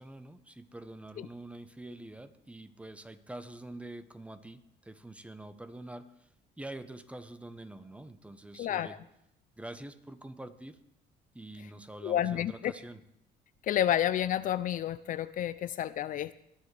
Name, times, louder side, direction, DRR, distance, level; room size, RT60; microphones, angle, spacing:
voice 1, 0.0-6.3 6.6-9.0 9.6-10.8 11.3-13.0, right 1 dB, 5° right, 11 dB, 0.8 m, -46 dB
voice 2, 8.6-9.0 12.0-12.7 13.6-16.3, left 11 dB, 50° left, 15 dB, 0.4 m, -30 dB
20.5 x 10.5 x 3.3 m, 0.79 s
cardioid pair, 110°, 17 cm